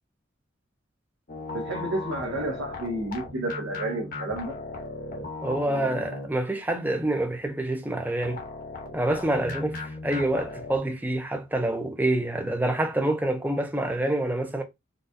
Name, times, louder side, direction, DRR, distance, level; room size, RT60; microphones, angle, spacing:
sound 1, 1.3-6.6 8.2-10.8, left 3 dB, 45° left, 0.8 m, -37 dB
voice 1, 1.5-4.6, right 1 dB, 75° right, 0.8 m, -31 dB
voice 2, 5.4-8.4 8.9-14.6, right 1 dB, 10° right, 0.5 m, -27 dB
3.9 x 2.3 x 2.6 m
head